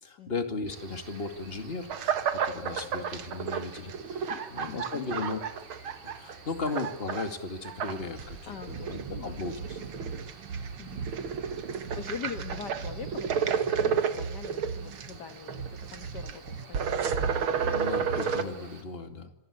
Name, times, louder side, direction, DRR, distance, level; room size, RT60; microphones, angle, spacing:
voice 1, 0.0-5.4 6.2-9.8 17.6-19.3, left 3 dB, 20° left, 7 dB, 2.2 m, -36 dB
Cricket, 0.7-18.8, right 4 dB, 80° right, 5.0 m, -51 dB
sound 1, 1.9-6.4 6.7-7.3 7.7-18.4, right 7 dB, 50° right, 2.0 m, -31 dB
voice 2, 4.3-5.4 8.5-10.2 10.8-11.1 11.9-17.2, left 6 dB, 45° left, 8 dB, 1.6 m, -43 dB
26.5 x 24.0 x 8.2 m, 0.97 s
omnidirectional pair, 3.5 m